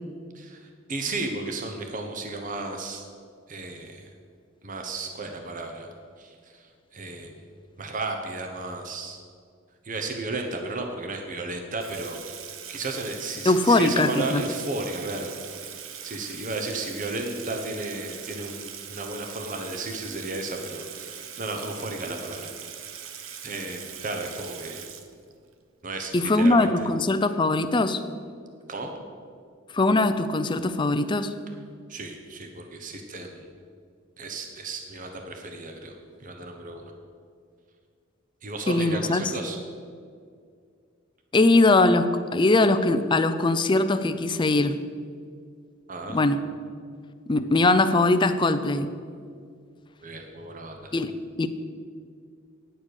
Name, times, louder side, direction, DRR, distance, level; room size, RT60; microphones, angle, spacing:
voice 1, 0.3-3.0 3.5-4.1 4.6-7.3 7.8-9.2 9.8-12.2 12.7-15.3 16.0-22.5 22.8-23.0 23.4-24.8 25.8-26.9 28.7-28.9 31.9-33.5 34.2-36.8 38.4-39.6 45.9-46.2 50.0-50.9, right 2 dB, 40° right, 4 dB, 1.0 m, -34 dB
Water tap faucet / Sink (filling or washing), 11.8-25.5, right 8 dB, 85° right, 0.9 m, -41 dB
voice 2, 13.5-14.4 26.1-28.0 29.7-31.3 38.7-39.3 41.3-44.8 46.1-46.4 47.3-49.0 50.9-51.5, left 2 dB, 25° left, 10 dB, 0.5 m, -21 dB
10.0 x 7.3 x 6.5 m, 2.1 s
head